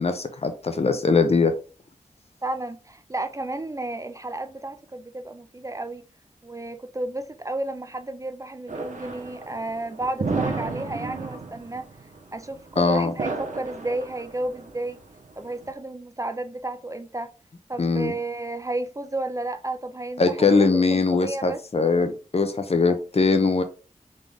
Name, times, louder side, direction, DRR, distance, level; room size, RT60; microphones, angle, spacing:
voice 1, 0.0-1.5 12.8-13.1 17.8-18.1 20.2-23.6, left 4 dB, 50° left, 0.8 m, -21 dB
voice 2, 2.4-6.0 6.4-11.9 12.3-15.0 15.4-17.3 17.7-21.6, right 2 dB, 25° right, 0.4 m, -32 dB
sound 1, 8.7-15.7, right 4 dB, 70° right, 1.1 m, -33 dB
3.9 x 3.8 x 3.5 m
wide cardioid pair, 65°, 14 cm